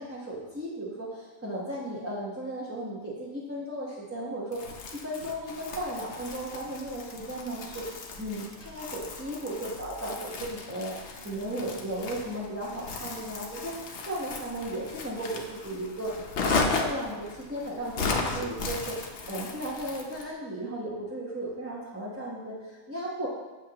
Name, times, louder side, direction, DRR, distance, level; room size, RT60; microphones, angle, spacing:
voice 1, 0.0-23.3, right 1 dB, 10° right, -6 dB, 0.8 m, -35 dB
Crumpling crinkling, 4.5-20.3, left 3 dB, 60° left, 1.0 m, -35 dB
7.6 x 7.5 x 2.9 m, 1.2 s
omnidirectional pair, 1.4 m